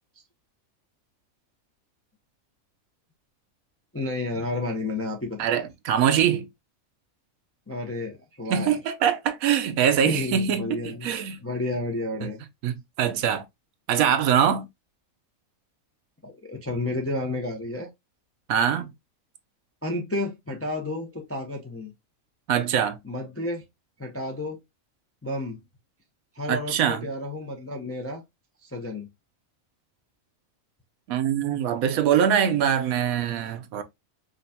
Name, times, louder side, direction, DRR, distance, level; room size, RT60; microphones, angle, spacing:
voice 1, 3.9-5.4 7.7-8.8 10.0-11.1 11.4-12.4 16.2-17.9 19.8-21.9 23.0-23.6 24.0-24.6 25.2-25.6 26.3-28.2 28.6-29.1, left 2 dB, 20° left, 0.3 m, -31 dB
voice 2, 5.4-6.5 8.5-11.4 12.2-12.3 12.6-13.4 13.9-14.7 18.5-18.9 22.5-23.0 26.5-27.1 31.1-33.8, right 8 dB, 80° right, 1.1 m, -23 dB
5.1 x 2.3 x 2.7 m
omnidirectional pair, 1.5 m